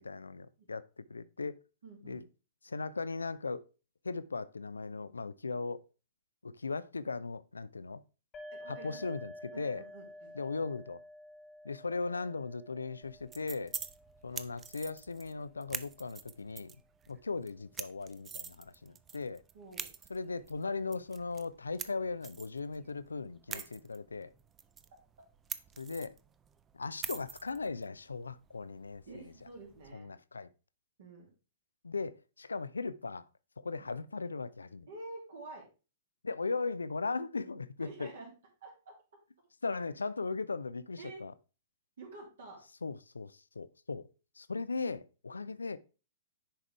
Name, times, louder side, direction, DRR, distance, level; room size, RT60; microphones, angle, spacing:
voice 1, 0.0-1.5 2.0-2.2 2.6-3.6 4.0-5.8 6.4-8.0 8.7-9.8 10.3-11.0 11.6-13.7 14.2-16.7 17.1-19.4 20.1-24.3 25.8-26.2 26.7-29.2 29.9-30.5 31.8-33.2 33.6-34.9 36.2-38.1 39.6-41.3 42.8-44.1 44.4-45.8, left 4 dB, 75° left, 0.5 m, -38 dB
voice 2, 1.8-2.3 8.5-9.0 9.5-10.3 19.5-19.9 23.5-23.7 29.1-30.1 31.0-31.3 34.9-35.7 37.8-38.3 38.6-38.9 41.0-41.2 42.0-42.6 45.4-45.5, right 2 dB, 60° right, 2.4 m, -48 dB
sound 1, 8.3-15.8, left 1 dB, 20° left, 1.4 m, -52 dB
sound 2, 13.0-29.9, right 7 dB, 20° right, 0.5 m, -47 dB
10.0 x 5.0 x 3.3 m
figure-of-eight pair, 105°, 0 cm